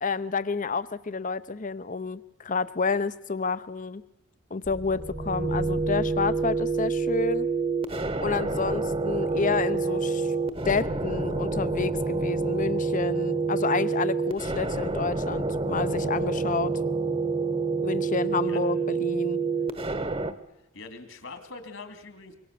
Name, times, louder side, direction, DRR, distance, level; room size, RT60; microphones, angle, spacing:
voice 1, 0.0-4.0 4.5-7.5 8.2-10.3 10.6-16.7 17.8-19.4, left 4 dB, 40° left, 15 dB, 0.8 m, -29 dB
sound 1, 4.7-20.3, right 4 dB, 25° right, 1.2 m, -28 dB
voice 2, 20.7-22.3, left 3 dB, 65° left, 8 dB, 3.1 m, -43 dB
25.5 x 23.5 x 6.9 m, 0.89 s
head